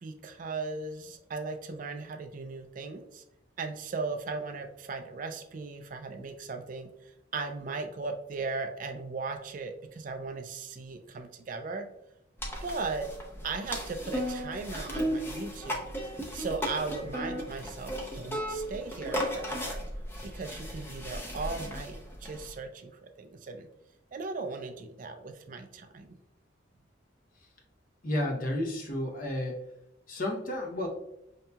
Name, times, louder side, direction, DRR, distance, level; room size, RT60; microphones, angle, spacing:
voice 1, 0.0-3.2 3.6-11.9 12.6-13.1 13.4-15.8 16.3-19.8 20.2-23.7 24.1-26.2, right 4 dB, 45° right, 6 dB, 0.3 m, -37 dB
sound 1, 12.4-22.5, equal, 10° left, 0.5 m, -36 dB
voice 2, 28.0-29.6 30.1-30.9, left 1 dB, 45° left, 2 dB, 0.7 m, -31 dB
5.4 x 2.8 x 2.2 m, 0.82 s
head